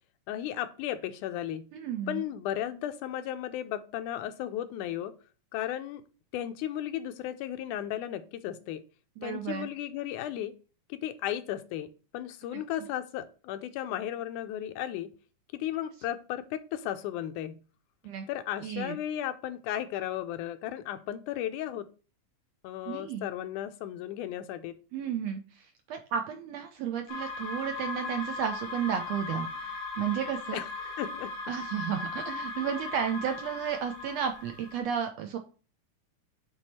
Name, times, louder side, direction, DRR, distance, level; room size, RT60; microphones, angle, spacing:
voice 1, 0.3-1.7 2.1-5.1 5.5-6.0 6.3-8.8 9.2-10.5 10.9-15.1 15.5-17.6 18.3-21.9 22.6-24.8 30.5-31.3, left 11 dB, 85° left, 10 dB, 2.1 m, -35 dB
voice 2, 1.7-2.2 9.2-9.7 18.0-18.2 18.6-19.0 22.9-23.3 24.9-30.6 31.5-35.4, right 8 dB, 75° right, 5 dB, 1.6 m, -33 dB
sound 1, 27.1-34.8, left 3 dB, 60° left, 2.7 m, -38 dB
8.0 x 3.6 x 4.2 m, 0.35 s
omnidirectional pair, 3.6 m